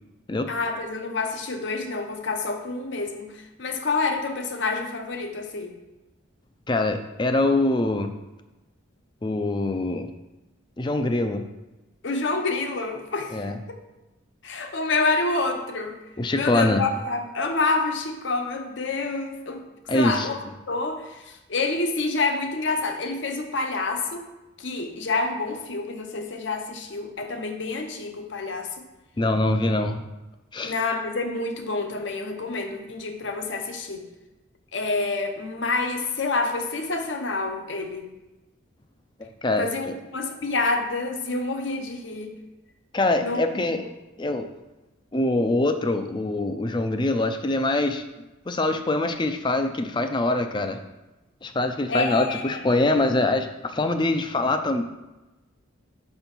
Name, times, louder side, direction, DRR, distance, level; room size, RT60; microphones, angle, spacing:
voice 1, 0.5-5.7 12.0-13.4 14.4-16.0 16.3-19.6 19.9-20.4 20.7-24.3 24.6-28.9 30.6-34.1 34.7-38.1 39.6-42.3 43.2-43.4 43.7-43.9 51.9-52.8, left 3 dB, 60° left, 5 dB, 0.8 m, -28 dB
voice 2, 6.7-8.1 9.2-10.1 10.8-11.5 13.3-13.6 16.2-16.9 19.9-20.3 29.2-30.0 30.5-30.7 39.2-39.9 42.9-43.8 44.2-44.5 45.1-48.0 48.5-50.8 51.4-54.8, left 2 dB, 20° left, 7 dB, 0.4 m, -24 dB
5.7 x 4.4 x 5.3 m, 1.1 s
head